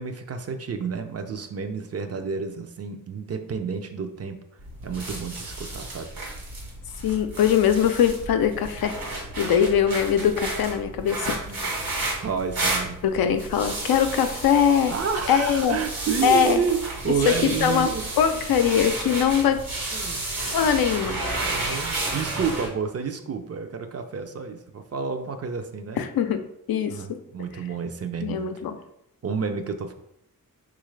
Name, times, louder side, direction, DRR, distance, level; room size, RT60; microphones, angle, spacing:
voice 1, 0.0-4.4 4.8-6.1 11.5-11.6 12.2-13.0 14.9-18.1 19.9-20.2 21.3-26.0 26.8-28.4 29.2-29.9, right 5 dB, 45° right, 6 dB, 0.5 m, -30 dB
sound 1, 4.6-22.7, right 2 dB, 70° right, 1.2 m, -32 dB
voice 2, 7.0-9.0 9.4-11.4 13.0-14.9 15.3-15.8 16.2-16.6 17.3-17.4 17.6-17.9 18.2-19.6 20.5-21.2 26.0-27.0 28.2-28.8, left 8 dB, 80° left, 7 dB, 0.5 m, -21 dB
3.8 x 2.5 x 3.1 m, 0.76 s
cardioid pair, 65°, 35 cm